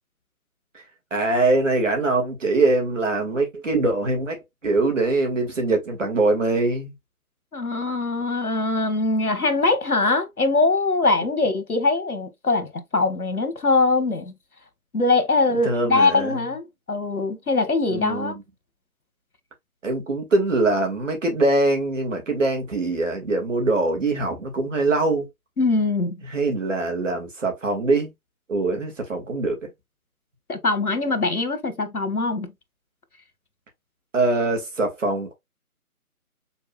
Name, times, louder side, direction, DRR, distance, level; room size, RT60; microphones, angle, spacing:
voice 1, 1.1-6.9 15.6-16.4 17.9-18.4 19.8-25.3 26.2-28.1 28.5-29.7 34.1-35.4, right 2 dB, 55° right, 2.0 m, -23 dB
voice 2, 7.5-14.3 14.9-18.3 25.6-26.2 30.5-32.5, left 3 dB, 75° left, 1.3 m, -22 dB
5.8 x 3.6 x 2.3 m
figure-of-eight pair, 150°, 44 cm